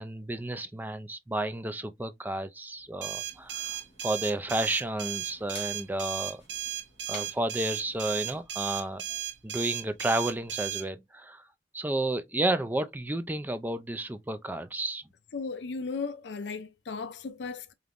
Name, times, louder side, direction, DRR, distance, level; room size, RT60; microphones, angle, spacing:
voice 1, 0.0-6.4 7.1-9.2 9.4-11.4 11.7-15.0, right 1 dB, 10° right, 0.4 m, -32 dB
sound 1, 3.0-10.8, right 11 dB, 90° right, 0.8 m, -35 dB
sound 2, 3.2-8.4, left 3 dB, 35° left, 2.0 m, -52 dB
voice 2, 15.3-17.7, left 4 dB, 70° left, 0.5 m, -36 dB
5.1 x 2.9 x 2.5 m
head